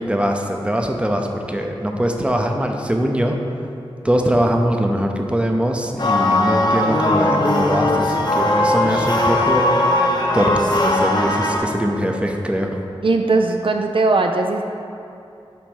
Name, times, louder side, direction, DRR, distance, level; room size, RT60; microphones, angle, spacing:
voice 1, 0.0-3.4 4.0-10.1 10.3-12.8, equal, 10° right, 2 dB, 0.6 m, -22 dB
sound 1, 6.0-11.6, left 1 dB, 45° left, 0.8 m, -19 dB
voice 2, 13.0-14.6, right 3 dB, 55° right, 4 dB, 0.4 m, -18 dB
7.5 x 4.0 x 5.5 m, 2.6 s
wide cardioid pair, 75°, 11 cm